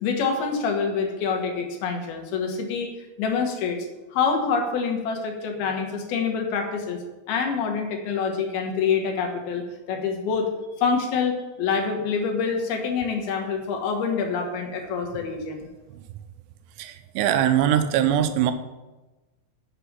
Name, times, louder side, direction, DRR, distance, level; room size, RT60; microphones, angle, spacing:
voice 1, 0.0-2.9 3.2-3.8 4.1-7.0 7.3-10.5 10.8-15.7, left 5 dB, 70° left, 3 dB, 3.0 m, -26 dB
voice 2, 16.8-18.5, right 10 dB, 85° right, 9 dB, 2.8 m, -22 dB
7.2 x 6.7 x 7.5 m, 1.1 s
omnidirectional pair, 4.8 m